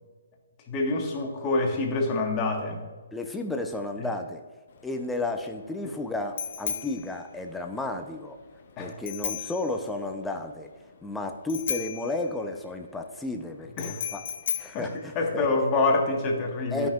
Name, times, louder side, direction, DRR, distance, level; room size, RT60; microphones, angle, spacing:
voice 1, 0.7-2.9 8.8-9.0 13.8-14.0 14.7-14.9 15.1-16.9, left 3 dB, 25° left, 1 dB, 1.4 m, -26 dB
voice 2, 3.1-4.4 4.8-8.4 8.8-10.7 11.0-14.2 14.6-15.5 16.7-16.9, left 2 dB, 5° left, 4 dB, 0.7 m, -33 dB
Bicycle bell, 4.7-15.8, left 7 dB, 50° left, 0.9 m, -37 dB
12.5 x 5.5 x 2.4 m, 1.5 s
figure-of-eight pair, 135°, 0 cm